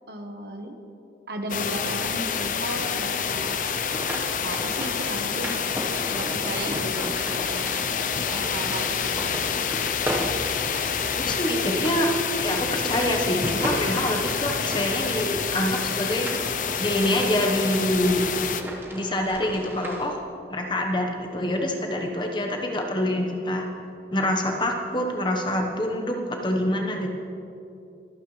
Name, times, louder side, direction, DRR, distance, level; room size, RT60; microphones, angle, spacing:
voice 1, 0.1-0.8 1.3-3.7 4.1-7.7 8.3-9.3, right 1 dB, 65° right, 4 dB, 1.2 m, -35 dB
sound 1, 1.5-18.6, left 7 dB, 45° left, 0.5 m, -28 dB
sound 2, 3.8-20.1, equal, 10° right, 1.2 m, -36 dB
voice 2, 11.2-12.1 12.4-16.3 16.8-18.2 18.9-23.7 24.1-27.1, left 1 dB, 25° left, 2 dB, 1.1 m, -26 dB
23.5 x 9.1 x 3.2 m, 2.7 s
head